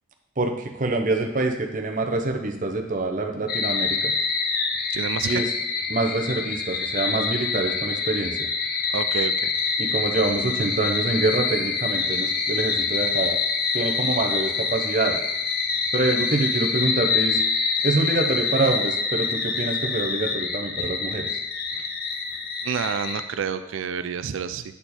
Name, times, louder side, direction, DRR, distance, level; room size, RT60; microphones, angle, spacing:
voice 1, 0.4-4.1 5.2-5.5 5.9-8.5 9.8-13.4 13.7-15.2 15.9-17.4 17.8-21.3, right 2 dB, 40° right, 3 dB, 0.8 m, -25 dB
sound 1, 3.5-23.2, left 4 dB, 50° left, 0.6 m, -26 dB
voice 2, 4.9-5.4 8.9-9.5 20.8-20.9 22.6-24.6, right 7 dB, 75° right, 11 dB, 0.4 m, -29 dB
8.3 x 4.5 x 4.3 m, 0.92 s
head